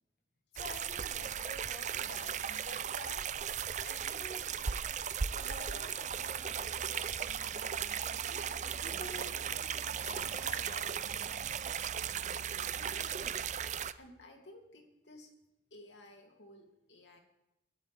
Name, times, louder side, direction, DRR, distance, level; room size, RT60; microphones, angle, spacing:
voice 1, 0.5-3.4 3.8-4.6 5.4-8.5 8.8-11.0, left 2 dB, 50° left, 1.4 m, -50 dB
sound 1, 0.6-13.9, right 8 dB, 40° right, 0.5 m, -37 dB
voice 2, 8.7-9.3 12.7-15.3 15.7-17.2, left 1 dB, 85° left, 2.8 m, -56 dB
23.5 x 12.5 x 3.5 m
head